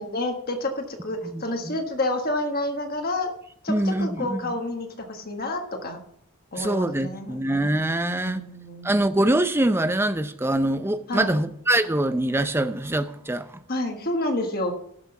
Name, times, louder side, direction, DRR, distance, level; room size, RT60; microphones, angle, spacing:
voice 1, 0.0-3.3 3.6-6.0 6.5-7.4 8.0-8.9 11.1-11.4 13.7-14.7, left 1 dB, 45° left, 1.5 m, -29 dB
voice 2, 1.3-1.8 3.7-4.5 6.6-8.5 8.8-13.6, right 1 dB, 10° right, 0.5 m, -24 dB
12.5 x 6.1 x 5.8 m
head